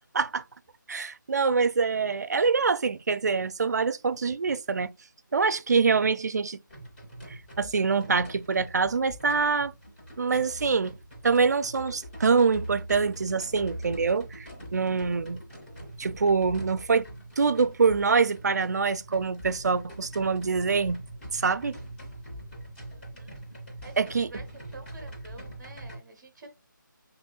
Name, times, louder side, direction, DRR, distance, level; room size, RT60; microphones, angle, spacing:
voice 1, 0.9-4.9 5.3-6.6 7.6-9.7 10.2-10.9 11.2-15.4 16.0-17.0 17.4-21.0 21.3-21.8 24.0-24.3, right 5 dB, 55° right, 0.4 m, -25 dB
sound 1, 6.7-26.0, right 1 dB, 30° left, 2.7 m, -43 dB
voice 2, 22.9-24.4 24.7-26.5, right 3 dB, 15° right, 0.7 m, -49 dB
6.1 x 3.1 x 2.3 m
figure-of-eight pair, 170°, 11 cm